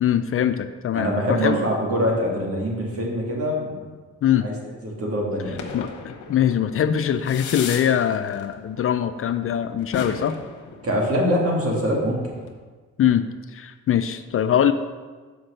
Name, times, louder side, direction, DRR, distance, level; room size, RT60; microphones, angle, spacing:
voice 1, 0.0-1.6 4.2-4.5 5.7-10.4 13.0-13.2 13.5-14.7, left 9 dB, 45° left, 10 dB, 0.4 m, -22 dB
voice 2, 0.9-3.9 4.4-4.5 4.8-5.6 10.8-12.3, equal, 50° right, -2 dB, 2.3 m, -24 dB
Sigh, 1.2-1.8, right 9 dB, 75° right, 0.6 m, -31 dB
sound 1, 5.4-12.5, left 5 dB, 70° left, 1.1 m, -37 dB
5.9 x 5.2 x 6.5 m, 1.4 s
cardioid pair, 90°, 30 cm